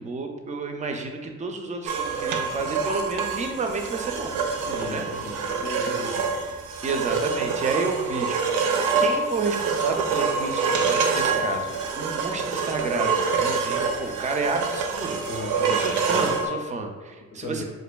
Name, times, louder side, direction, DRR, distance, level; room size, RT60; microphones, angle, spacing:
voice 1, 0.0-4.4 4.9-5.1 5.8-5.9 6.8-8.4 9.0-15.3 15.7-17.6, right 4 dB, 25° right, 4 dB, 0.4 m, -30 dB
sound 1, 1.9-16.5, right 5 dB, 90° right, 0.5 m, -26 dB
voice 2, 4.7-6.3 15.3-16.3 17.3-17.6, left 2 dB, 45° left, -1 dB, 0.6 m, -35 dB
4.1 x 2.5 x 2.2 m, 1.4 s
cardioid pair, 90°, 30 cm